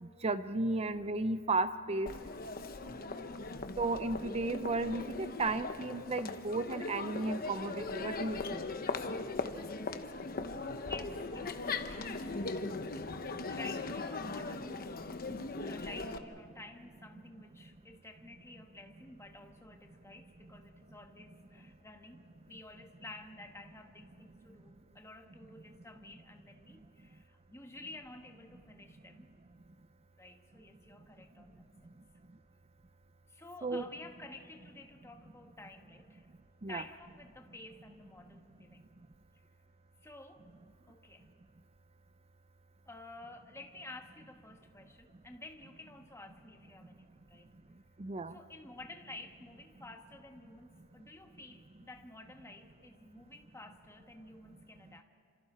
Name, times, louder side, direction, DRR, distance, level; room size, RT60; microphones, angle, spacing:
voice 1, 0.0-2.1 3.8-8.6 33.6-33.8 36.6-36.8 48.0-48.4, right 3 dB, 30° right, 12 dB, 0.5 m, -34 dB
Crowd, 2.1-16.2, left 3 dB, 45° left, 1.0 m, -39 dB
voice 2, 3.1-3.6 10.5-12.8 13.5-14.9 15.3-29.3 30.2-32.0 32.8-32.9 33.3-36.3 36.7-38.9 40.0-40.5 40.9-41.3 42.8-47.5 48.3-55.0, left 2 dB, 15° left, 4 dB, 1.3 m, -52 dB
30.0 x 26.5 x 4.4 m, 2.5 s
head